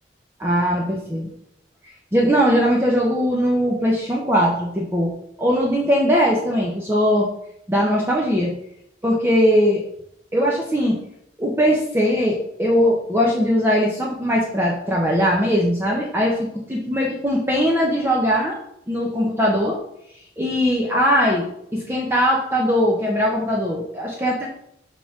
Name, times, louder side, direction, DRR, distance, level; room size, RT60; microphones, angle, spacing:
voice 1, 0.4-1.3 2.1-5.1 5.4-7.3 7.7-8.5 9.0-9.8 10.3-11.0 11.4-18.6 18.9-19.8 20.4-21.5 21.7-24.5, equal, 15° right, -3 dB, 0.9 m, -20 dB
6.8 x 3.7 x 6.1 m, 0.74 s
head